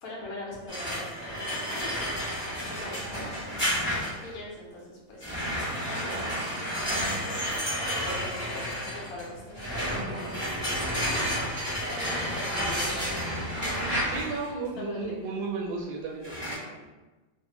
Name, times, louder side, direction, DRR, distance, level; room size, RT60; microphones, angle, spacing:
voice 1, 0.0-2.1 2.5-3.9 4.2-5.5 6.0-9.9 11.1-11.4 11.8-13.8 14.8-15.1, left 1 dB, 60° left, -4 dB, 0.7 m, -42 dB
sound 1, 0.7-4.3 5.2-14.5 16.2-16.5, equal, 25° left, 0.5 m, -31 dB
voice 2, 14.0-16.9, right 4 dB, 75° right, 0 dB, 1.2 m, -34 dB
3.1 x 2.0 x 3.0 m, 1.2 s
omnidirectional pair, 2.0 m